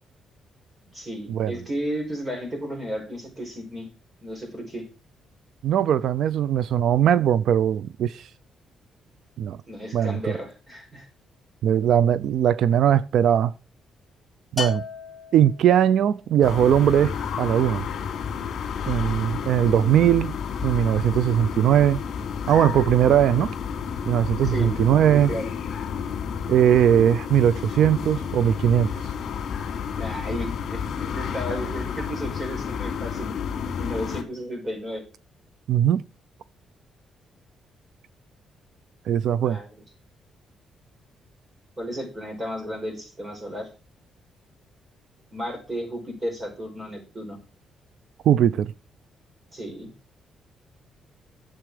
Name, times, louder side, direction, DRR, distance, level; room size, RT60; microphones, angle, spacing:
voice 1, 0.9-3.9 4.2-4.8 9.7-11.1 24.4-24.7 25.3-25.5 30.0-33.4 33.7-35.0 39.4-39.8 41.8-43.7 45.3-47.4 49.5-49.9, equal, 20° right, 4.9 m, -33 dB
voice 2, 5.6-8.3 9.4-9.6 9.9-10.4 11.6-13.5 14.5-14.8 15.3-17.8 18.9-20.3 20.6-22.0 22.5-23.5 24.1-25.3 26.5-29.1 35.7-36.0 39.1-39.6 48.3-48.7, right 10 dB, 65° right, 0.5 m, -20 dB
Bell, 14.6-15.9, left 4 dB, 5° left, 2.8 m, -33 dB
sound 1, 16.4-34.2, left 7 dB, 55° left, 2.9 m, -31 dB
11.5 x 7.8 x 4.9 m
cardioid pair, 155°, 0 cm